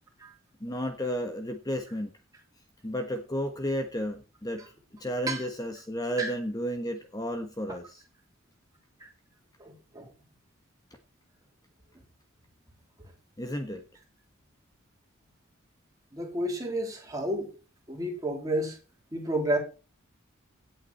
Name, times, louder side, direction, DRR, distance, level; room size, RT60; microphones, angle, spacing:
voice 1, 0.6-2.1 2.8-4.6 5.0-8.0 13.4-13.8, equal, 20° left, 1.2 m, -32 dB
voice 2, 9.6-10.1 13.0-13.1 16.1-17.5 17.9-18.8 19.1-19.6, right 1 dB, 15° right, 3.7 m, -31 dB
17.0 x 8.1 x 4.3 m
head